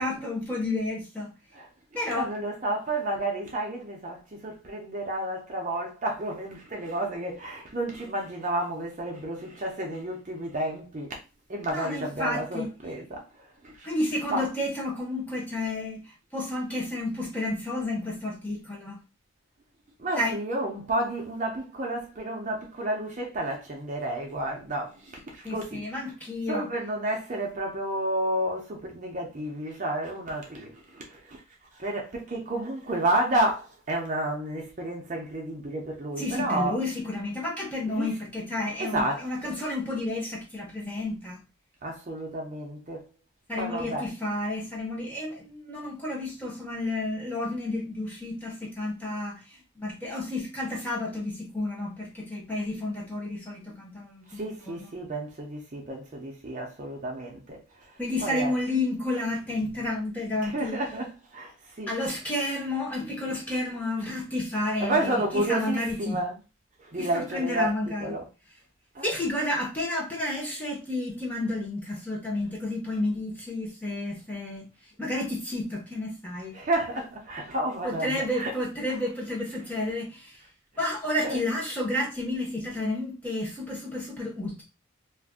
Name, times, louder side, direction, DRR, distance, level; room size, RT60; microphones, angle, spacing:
voice 1, 0.0-1.3 1.9-2.3 11.7-12.7 13.8-16.0 16.3-19.0 20.2-20.4 25.4-26.7 36.2-41.4 43.5-49.4 49.8-54.8 58.0-60.8 61.9-66.2 67.0-68.1 69.0-74.7 75.0-76.5 77.8-80.3 80.8-84.6, left 1 dB, 5° left, 0.8 m, -31 dB
voice 2, 2.1-11.2 11.5-13.2 13.6-13.9 14.3-14.6 20.0-26.1 26.5-31.4 31.7-36.8 37.9-38.2 38.8-39.6 41.8-43.0 43.6-44.1 54.3-57.9 58.2-58.6 60.4-62.0 64.8-66.4 66.8-68.3 68.9-69.1 76.5-78.5 78.9-79.0 79.5-79.8 80.8-80.9 81.2-81.5, right 1 dB, 35° right, 0.5 m, -31 dB
2.5 x 2.2 x 3.5 m
head